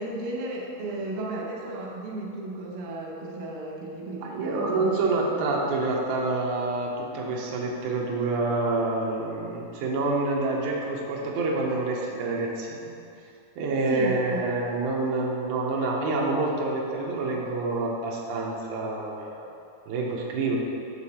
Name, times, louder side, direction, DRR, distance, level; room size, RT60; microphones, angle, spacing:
voice 1, 0.0-5.0 13.9-14.4, right 2 dB, 90° right, -2 dB, 3.0 m, -34 dB
voice 2, 4.2-12.8 13.6-19.5 19.9-20.6, right 3 dB, 70° right, -2 dB, 2.0 m, -27 dB
6.6 x 6.5 x 4.2 m, 2.6 s
omnidirectional pair, 4.3 m